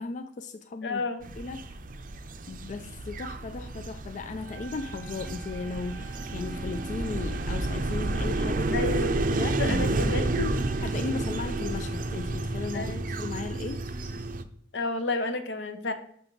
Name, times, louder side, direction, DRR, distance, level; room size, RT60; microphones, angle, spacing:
voice 1, 0.0-1.1 1.4-1.8 2.5-8.9 9.3-9.6 9.9-10.2 10.8-13.8, left 4 dB, 45° left, 8 dB, 0.3 m, -36 dB
voice 2, 0.8-1.2 8.7-9.2 9.6-10.5 12.7-13.0 14.7-15.9, left 3 dB, 80° left, 7 dB, 0.8 m, -31 dB
sound 1, 1.2-14.4, right 2 dB, 50° right, 0.5 m, -30 dB
Wind instrument woodwind instrument, 4.4-12.7, right 6 dB, 85° right, 0.7 m, -49 dB
5.9 x 5.9 x 3.9 m, 0.62 s
head